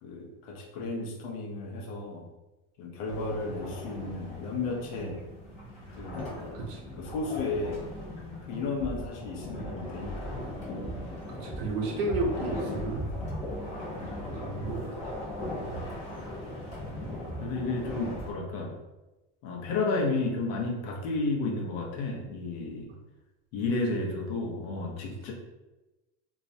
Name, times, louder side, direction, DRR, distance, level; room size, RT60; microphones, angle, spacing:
voice 1, 0.0-2.3 2.8-5.2 6.0-6.5 7.0-7.8 8.5-10.4 13.9-14.2 15.6-15.7 17.4-18.7 19.4-22.9 23.5-25.3, left 3 dB, 65° left, -1 dB, 0.6 m, -33 dB
sound 1, 3.1-18.3, left 1 dB, 25° left, 0.5 m, -38 dB
voice 2, 11.3-13.1 14.4-14.9 22.9-23.0, right 2 dB, 75° right, 1 dB, 0.6 m, -32 dB
2.4 x 2.0 x 2.6 m, 1.1 s
cardioid pair, 175°, 32 cm